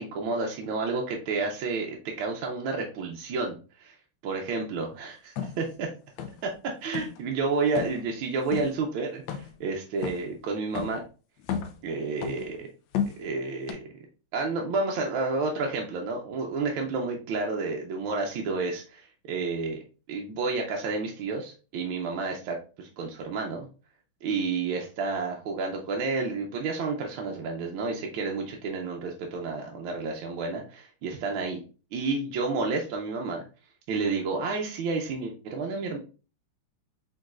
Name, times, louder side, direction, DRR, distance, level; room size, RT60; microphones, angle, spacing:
voice 1, 0.0-3.9 4.2-5.9 6.4-6.5 6.8-11.0 11.8-12.7 13.2-13.8 14.3-19.8 20.1-23.7 24.2-31.6 31.9-33.4 33.9-36.0, right 4 dB, 75° right, 1 dB, 1.4 m, -30 dB
sound 1, 5.4-5.6 6.2-6.5 6.8-7.2 7.7-8.0 8.5-8.7 9.3-9.6 10.0-10.3 10.7-11.0 11.4-11.8 12.2-12.5 12.9-13.3 13.7-13.8, left 8 dB, 70° left, 1.3 m, -32 dB
5.1 x 3.9 x 2.4 m, 0.36 s
omnidirectional pair, 2.4 m